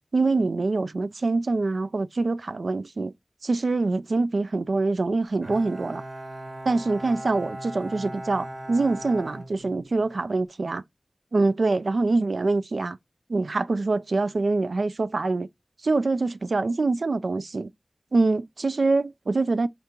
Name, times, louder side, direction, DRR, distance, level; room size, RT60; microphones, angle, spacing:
voice 1, 0.1-3.1 3.4-6.0 6.7-10.8 11.3-13.0 13.3-15.5 15.8-17.7 18.1-19.7, right 3 dB, 75° right, 0.3 m, -24 dB
Bowed string instrument, 5.4-10.3, right 1 dB, 60° right, 1.3 m, -39 dB
4.4 x 2.9 x 3.7 m
wide cardioid pair, 70°, 0 cm